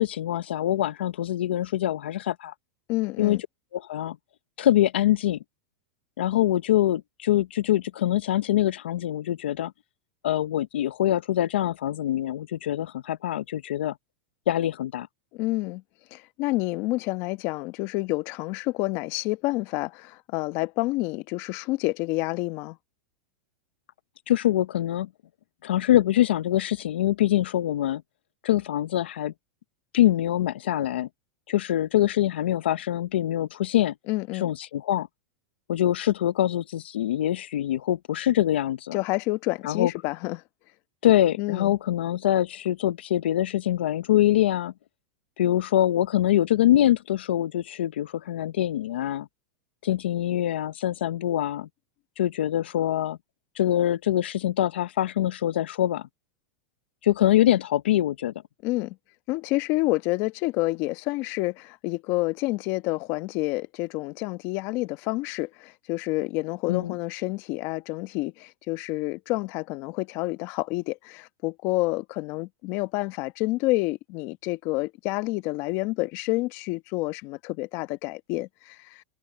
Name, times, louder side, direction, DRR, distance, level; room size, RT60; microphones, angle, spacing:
voice 1, 0.0-2.5 3.2-3.4 3.7-4.2 4.6-5.4 6.2-9.7 10.2-13.9 14.5-15.1 24.3-25.1 25.6-28.0 28.4-29.3 29.9-31.1 31.5-33.9 34.4-35.1 35.7-39.0 39.6-39.9 41.0-44.7 45.4-49.3 49.8-51.7 52.2-53.2 53.6-56.1 57.0-58.3 66.7-67.0, left 12 dB, 90° left, 0.6 m, -24 dB
voice 2, 2.9-3.4 15.3-15.8 16.1-22.8 34.1-34.5 38.9-40.4 41.4-41.7 58.6-59.0 59.3-79.0, left 21 dB, 45° left, 1.1 m, -28 dB
supercardioid pair, 145°, 6 cm